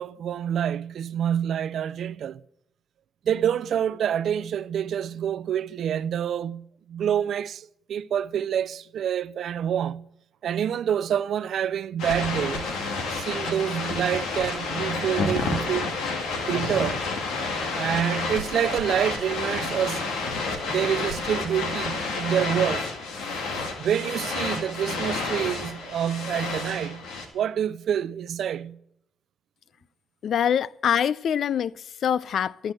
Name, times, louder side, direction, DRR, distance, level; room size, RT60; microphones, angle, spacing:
voice 1, 0.0-2.4 3.2-10.1 10.4-12.8 13.1-15.9 16.5-17.0 17.7-20.1 20.7-22.9 23.8-27.1 27.3-28.8, right 9 dB, 70° right, 0.4 m, -27 dB
sound 1, 12.0-27.3, left 3 dB, 85° left, 2.0 m, -30 dB
voice 2, 30.2-32.7, left 8 dB, 70° left, 0.4 m, -25 dB
12.0 x 7.7 x 7.7 m
supercardioid pair, 60°, 0 cm